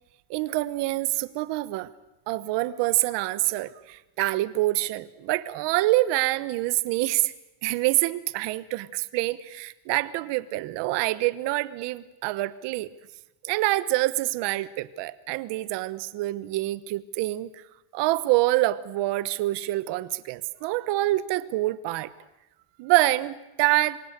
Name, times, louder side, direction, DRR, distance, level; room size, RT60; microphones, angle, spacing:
voice 1, 0.3-1.9 2.3-7.3 7.6-12.9 13.4-17.6 17.9-22.1 22.8-24.0, right 18 dB, 60° right, 15 dB, 1.2 m, -26 dB
28.0 x 23.5 x 6.8 m, 0.98 s
cardioid pair, 175°, 47 cm